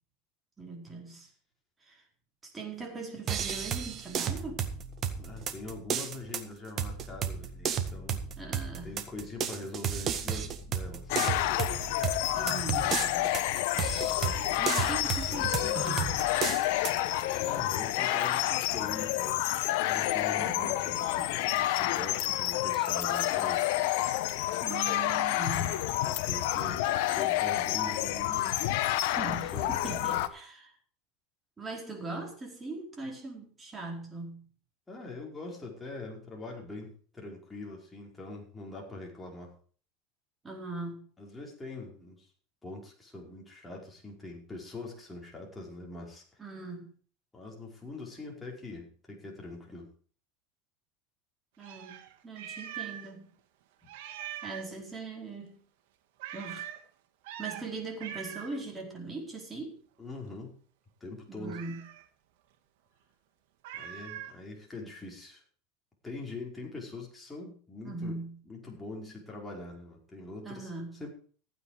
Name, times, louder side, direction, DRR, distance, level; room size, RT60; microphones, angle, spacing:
voice 1, 0.6-1.3 1.8-2.0 2.4-4.7 8.4-8.9 12.3-13.7 14.6-16.2 20.4-20.8 24.6-25.8 29.2-30.7 31.6-34.5 40.4-41.1 46.4-46.9 51.6-52.0 52.2-53.3 54.4-55.6 56.3-56.7 57.4-59.8 61.3-61.9 67.8-68.4 70.4-71.0, right 3 dB, 15° right, 1 dB, 4.6 m, -40 dB
sound 1, 3.3-17.0, right 7 dB, 35° right, 1.7 m, -34 dB
voice 2, 5.2-8.2 8.8-11.2 17.3-19.4 19.8-23.8 25.9-28.6 29.3-29.7 34.9-39.5 41.2-42.3 42.6-46.4 47.3-49.9 53.8-53.9 60.0-60.6 61.0-61.6 63.8-65.4 66.0-68.2 68.5-70.7 71.0-71.1, left 2 dB, 10° left, -1 dB, 5.0 m, -43 dB
sound 2, 11.1-30.3, left 14 dB, 70° left, 1.1 m, -29 dB
Meow, 51.6-53.1 53.4-53.5 53.9-54.7 56.2-56.8 57.2-57.6 58.0-58.6 61.4-62.0 63.6-64.4, right 10 dB, 75° right, 2.1 m, -42 dB
15.0 x 9.3 x 5.0 m, 0.43 s
supercardioid pair, 125°, 0 cm